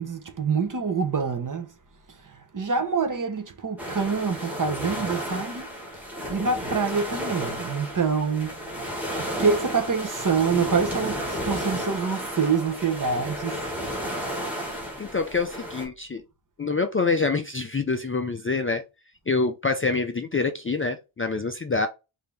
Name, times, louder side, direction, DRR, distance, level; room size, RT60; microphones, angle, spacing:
voice 1, 0.0-1.7 2.2-5.7 5.9-6.0 6.3-8.7 9.2-13.7, right 5 dB, 40° right, 0.9 m, -26 dB
sound 1, 3.8-15.8, equal, 5° right, 1.7 m, -33 dB
voice 2, 15.0-16.2 16.6-18.8 19.3-21.9, left 4 dB, 30° left, 0.4 m, -26 dB
5.2 x 2.8 x 3.3 m
wide cardioid pair, 150°, 50 cm